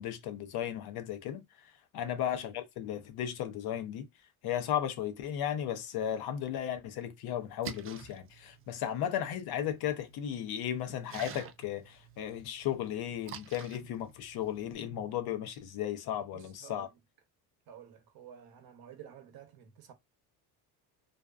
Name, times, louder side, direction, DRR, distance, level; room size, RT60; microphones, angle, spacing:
voice 1, 0.0-4.1 4.4-16.9, left 10 dB, 60° left, 0.7 m, -35 dB
Splash splatter, 7.4-14.8, right 8 dB, 35° right, 0.4 m, -50 dB
voice 2, 16.3-16.9 17.7-19.9, right 9 dB, 55° right, 0.8 m, -52 dB
2.5 x 2.2 x 2.3 m
supercardioid pair, 85°, 43 cm